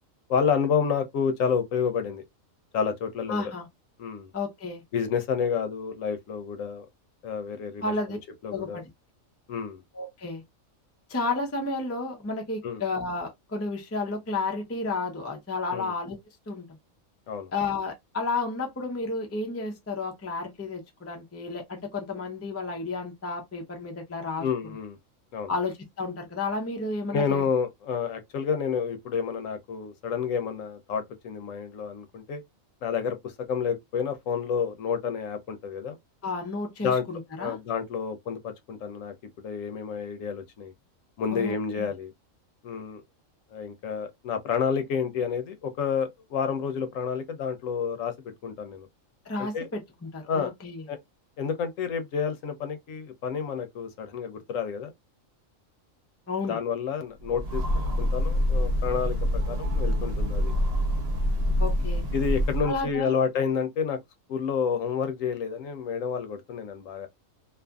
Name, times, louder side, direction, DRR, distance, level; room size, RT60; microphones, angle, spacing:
voice 1, 0.3-2.2 2.7-3.5 4.0-4.3 4.9-6.9 7.2-8.8 9.5-9.8 12.6-12.8 15.7-15.9 17.3-17.5 24.4-25.0 25.3-25.5 27.1-32.4 32.8-36.0 36.8-37.0 37.4-40.7 41.2-42.1 42.6-43.0 43.5-48.9 49.4-49.7 50.3-50.5 50.9-51.0 51.4-54.9 56.5-60.5 62.1-64.0 64.3-67.1, left 6 dB, 75° left, 1.0 m, -29 dB
voice 2, 3.3-3.7 4.3-4.8 7.8-8.2 8.5-8.8 9.9-10.4 11.1-16.2 16.5-16.7 17.5-24.5 25.5-27.5 36.2-37.6 41.3-41.9 49.3-50.8 56.3-56.6 61.6-62.0 62.6-63.1, left 3 dB, 20° left, 0.3 m, -32 dB
Train, 57.2-62.9, equal, 50° right, 1.0 m, -26 dB
2.5 x 2.5 x 2.2 m
omnidirectional pair, 1.4 m